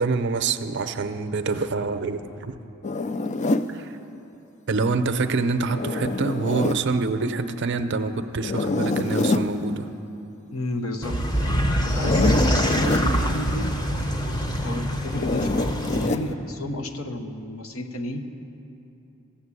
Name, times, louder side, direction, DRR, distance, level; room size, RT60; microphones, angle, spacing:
voice 1, 0.0-2.6 3.7-3.9 4.7-9.9, right 3 dB, 60° right, 9 dB, 0.6 m, -26 dB
Zipper (clothing), 2.8-3.7 5.7-6.8 8.4-9.5 11.9-13.1 15.1-16.3, left 2 dB, 35° left, 0.4 m, -25 dB
voice 2, 10.5-11.2 11.8-13.7 14.6-18.2, left 1 dB, 85° left, 5 dB, 1.0 m, -31 dB
sound 1, 11.0-16.1, equal, 20° left, 0.8 m, -24 dB
14.5 x 7.2 x 9.7 m, 2.8 s
head